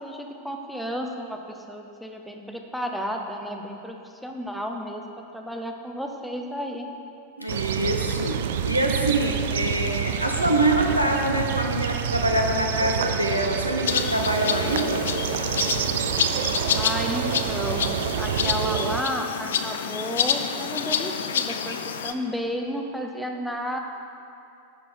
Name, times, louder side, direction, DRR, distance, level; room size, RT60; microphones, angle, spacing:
voice 1, 0.0-5.0 5.3-6.9 9.4-10.0 16.7-17.9 18.2-23.8, equal, ahead, 2 dB, 0.8 m, -32 dB
voice 2, 7.4-15.1, right 1 dB, 85° right, 2 dB, 0.9 m, -25 dB
sound 1, 7.5-19.0, right 9 dB, 55° right, 0.4 m, -28 dB
sound 2, 13.9-22.1, left 7 dB, 65° left, 0.4 m, -28 dB
11.5 x 4.2 x 5.6 m, 2.6 s
figure-of-eight pair, 90°, 0 cm